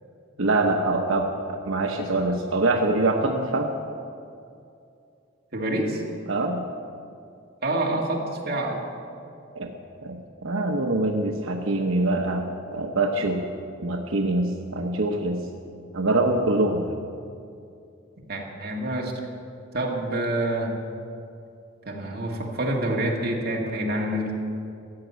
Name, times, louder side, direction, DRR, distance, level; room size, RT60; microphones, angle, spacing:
voice 1, 0.4-3.7 6.3-6.7 9.5-9.7 10.0-13.4 13.8-15.4 15.9-17.0, right 2 dB, 90° right, 2 dB, 0.9 m, -24 dB
voice 2, 5.5-6.0 7.6-8.8 18.3-19.1 19.7-20.7 21.9-24.3, right 1 dB, 50° right, -1 dB, 2.2 m, -27 dB
14.5 x 7.4 x 9.6 m, 2.5 s
head